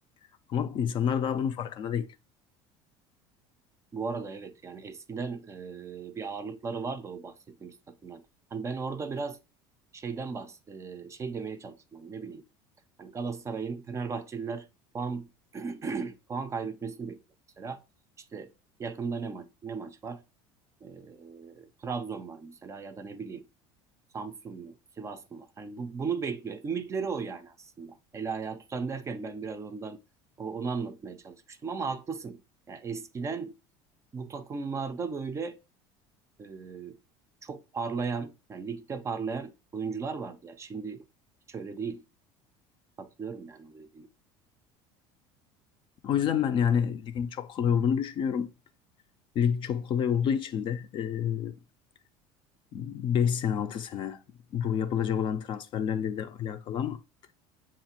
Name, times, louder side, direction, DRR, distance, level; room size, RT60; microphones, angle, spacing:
voice 1, 0.5-2.1 46.0-48.5 49.4-51.6 52.7-54.2 54.5-57.0, left 8 dB, 45° left, 0.4 m, -28 dB
voice 2, 3.9-8.2 8.5-9.4 9.9-12.4 13.0-14.7 14.9-17.2 17.6-17.8 18.3-18.5 18.8-20.2 20.8-23.4 24.1-30.0 30.4-32.4 32.7-33.6 34.1-35.6 36.4-37.0 37.4-41.0 41.5-42.0 43.0-44.1, right 5 dB, 25° right, 0.4 m, -36 dB
7.1 x 2.4 x 2.8 m
supercardioid pair, 125°, 12 cm